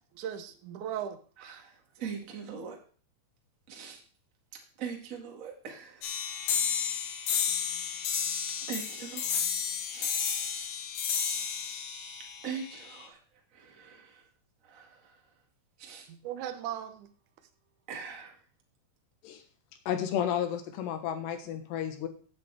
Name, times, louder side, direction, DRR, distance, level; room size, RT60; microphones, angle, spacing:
voice 1, 0.2-1.6 16.1-17.1, right 10 dB, 85° right, 7 dB, 1.7 m, -38 dB
voice 2, 1.4-2.8 3.7-4.0 4.5-6.1 8.5-9.4 9.9-10.2 12.4-13.2 13.5-14.3 14.6-15.2 15.8-16.1 17.9-18.4, right 6 dB, 50° right, 1 dB, 0.9 m, -42 dB
sound 1, 6.0-13.0, left 7 dB, 60° left, 2.2 m, -32 dB
voice 3, 19.9-22.1, left 9 dB, 80° left, 6 dB, 3.4 m, -32 dB
14.5 x 8.4 x 3.4 m, 0.42 s
omnidirectional pair, 4.9 m